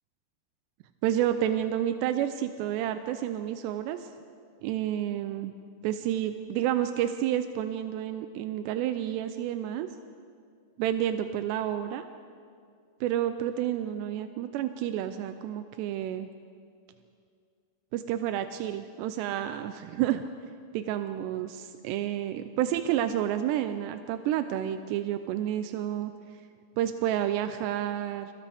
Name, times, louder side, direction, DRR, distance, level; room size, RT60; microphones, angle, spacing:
voice 1, 1.0-4.1 4.6-5.5 5.8-9.9 10.8-12.1 13.0-16.3 17.9-20.3 20.7-26.1 26.8-28.3, right 11 dB, 80° right, 9 dB, 2.5 m, -30 dB
30.0 x 26.0 x 3.5 m, 2.3 s
omnidirectional pair, 5.4 m